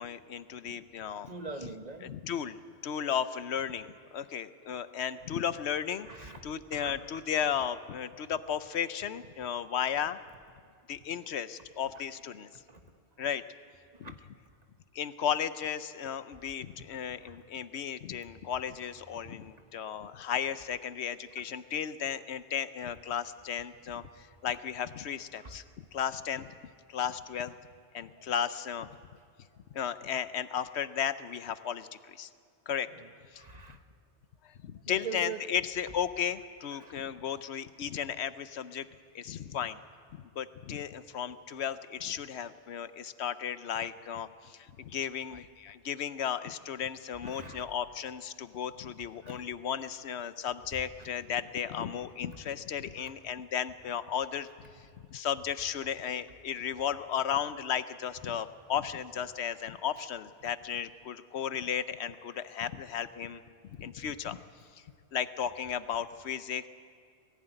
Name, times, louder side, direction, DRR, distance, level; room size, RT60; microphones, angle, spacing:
voice 1, 0.0-1.3 2.0-10.2 10.9-12.6 13.2-13.4 14.0-14.1 14.9-26.5 26.9-27.5 27.9-28.9 29.7-32.3 32.7-32.9 33.3-33.4 34.4-38.9 39.1-39.8 40.1-63.4 63.8-64.4 64.7-64.8 65.1-66.7, left 8 dB, 75° left, 13 dB, 1.0 m, -35 dB
voice 2, 1.3-2.1 6.1-6.4 6.7-7.0 10.9-11.0 11.9-12.0 12.7-12.9 13.9-14.2 17.2-17.4 25.3-25.7 28.2-28.3 32.9-33.1 33.3-33.8 34.9-35.4 36.7-37.0 47.2-47.7 49.2-49.4 51.0-51.1 53.0-53.1, right 4 dB, 40° right, 7 dB, 1.1 m, -43 dB
21.0 x 15.5 x 9.0 m, 2.2 s
omnidirectional pair, 1.1 m